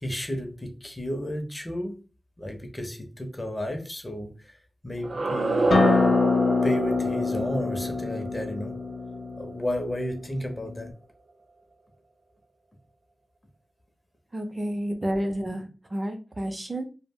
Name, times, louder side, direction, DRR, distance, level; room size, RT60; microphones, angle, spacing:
voice 1, 0.0-2.0 2.4-6.2 6.6-8.7 9.3-10.9, equal, 20° left, 5 dB, 0.6 m, -33 dB
sound 1, 5.0-9.9, right 3 dB, 75° right, 0.4 m, -28 dB
Acoustic guitar, 5.7-10.9, left 5 dB, 85° left, 0.3 m, -26 dB
voice 2, 14.3-16.8, right 1 dB, 30° right, 5 dB, 0.6 m, -30 dB
2.3 x 2.1 x 3.5 m, 0.35 s
wide cardioid pair, 80°, 0 cm